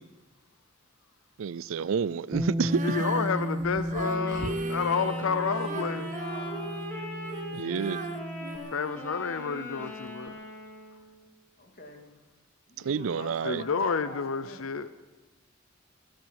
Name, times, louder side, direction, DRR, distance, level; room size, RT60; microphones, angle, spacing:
voice 1, 1.4-3.0 7.5-8.0 12.8-13.6, right 6 dB, 80° right, 0.4 m, -29 dB
Bass guitar, 2.3-8.6, equal, 15° right, 1.5 m, -34 dB
Female singing, 2.6-9.7 10.3-10.4, right 4 dB, 40° right, 0.7 m, -39 dB
voice 2, 2.8-6.2 8.7-10.4 13.4-14.9, left 5 dB, 90° left, 0.6 m, -30 dB
Wind instrument woodwind instrument, 4.0-11.2, equal, 10° left, 2.7 m, -40 dB
voice 3, 6.1-6.9 11.6-12.2 12.7-14.7, left 2 dB, 50° left, 2.6 m, -45 dB
13.5 x 13.0 x 7.6 m
head